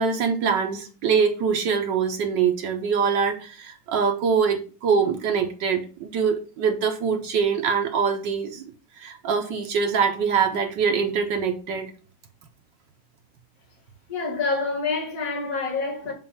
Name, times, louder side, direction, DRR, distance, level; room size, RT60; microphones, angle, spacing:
voice 1, 0.0-8.6 9.0-11.9, right 6 dB, 75° right, 1.4 m, -24 dB
voice 2, 14.1-16.1, left 4 dB, 45° left, 2.1 m, -27 dB
7.6 x 2.6 x 5.5 m
omnidirectional pair, 2.1 m